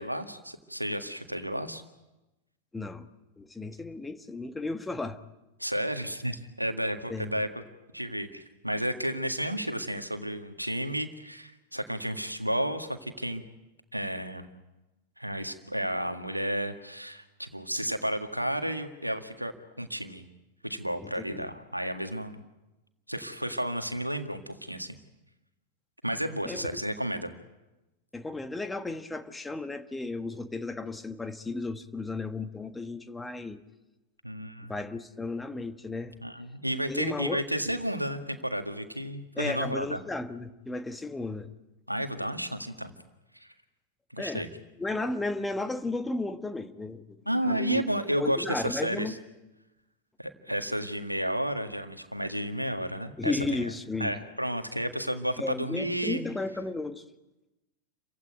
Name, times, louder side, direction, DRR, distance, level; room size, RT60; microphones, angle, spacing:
voice 1, 0.0-1.8 5.6-7.5 7.9-13.4 13.9-14.5 15.2-19.5 19.8-20.3 20.6-22.4 23.1-25.0 26.0-27.3 34.2-34.7 36.2-40.0 41.9-42.9 43.4-43.5 44.1-44.5 47.3-49.1 50.2-53.7 54.0-56.2, equal, 90° right, 7 dB, 1.8 m, -32 dB
voice 2, 2.7-3.1 3.4-5.2 7.1-7.3 21.0-21.4 26.4-26.8 28.1-33.6 34.7-36.2 36.9-37.4 39.4-41.5 44.2-44.4 44.8-47.8 48.2-49.2 53.2-54.1 55.4-57.0, left 2 dB, 10° left, 9 dB, 1.5 m, -34 dB
29.5 x 16.0 x 9.3 m, 1.0 s
figure-of-eight pair, 90°, 0 cm